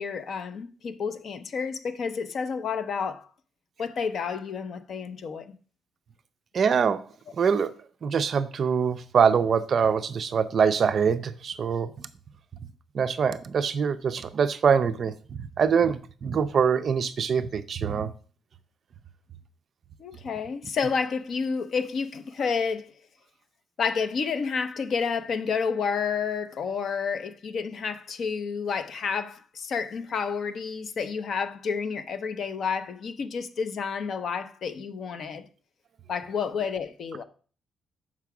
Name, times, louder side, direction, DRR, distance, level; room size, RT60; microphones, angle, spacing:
voice 1, 0.0-3.3 3.8-5.5 20.0-22.9 23.8-35.4 36.1-37.2, left 5 dB, 40° left, 0.6 m, -30 dB
voice 2, 6.5-7.0 7.4-7.7 8.0-11.9 12.9-18.1, right 6 dB, 35° right, 0.4 m, -24 dB
5.9 x 4.7 x 5.9 m
cardioid pair, 170°, 0 cm